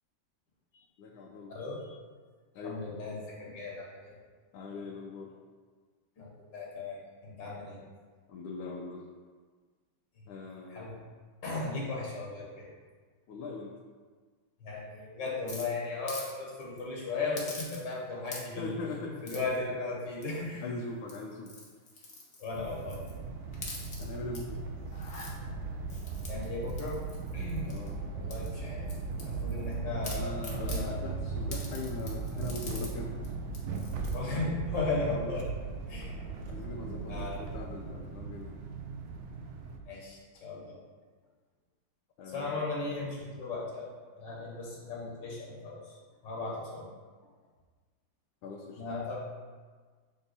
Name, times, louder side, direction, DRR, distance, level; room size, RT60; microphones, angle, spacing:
voice 1, 1.0-1.6 2.5-2.8 4.5-5.4 8.3-9.0 10.3-10.9 13.3-13.7 18.5-19.4 20.6-21.5 24.0-24.6 27.7-28.0 30.1-33.2 36.5-38.6 42.2-42.6 48.4-48.8, left 3 dB, 85° left, -1 dB, 1.5 m, -41 dB
voice 2, 1.5-2.0 2.6-4.1 6.2-7.0 7.2-7.8 10.7-10.9 11.4-12.7 14.6-18.7 19.2-20.6 22.4-23.0 26.3-27.0 27.3-27.8 28.1-28.8 29.2-31.0 34.1-35.5 35.9-36.1 37.1-37.4 39.9-40.8 42.3-43.9 44.2-45.9 46.2-46.9 48.8-49.2, left 3 dB, 65° left, -4 dB, 1.8 m, -36 dB
sound 1, 15.5-16.3 16.6-16.8 17.3-18.0 18.2-18.7 19.2-19.6 20.2-20.6 21.0-23.1 23.5-24.4 24.8-25.3 25.9-27.9 28.3-29.7 30.0-30.8 31.5-32.9 33.2-33.3 33.5-34.2, left 3 dB, 40° left, 1.1 m, -45 dB
sound 2, 22.5-39.8, right 4 dB, 90° right, 1.5 m, -38 dB
6.9 x 3.7 x 4.0 m, 1.5 s
omnidirectional pair, 2.2 m